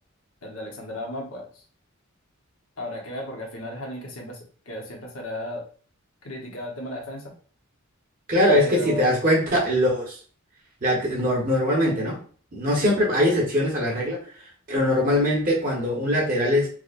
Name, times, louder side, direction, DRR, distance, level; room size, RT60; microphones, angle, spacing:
voice 1, 0.4-1.6 2.8-5.7 6.2-7.3 8.5-9.1, left 1 dB, 90° left, 0 dB, 1.1 m, -35 dB
voice 2, 8.3-10.1 10.8-12.2 12.5-14.2 14.7-16.7, left 1 dB, 40° right, -3 dB, 1.1 m, -22 dB
4.7 x 2.2 x 2.5 m, 0.42 s
head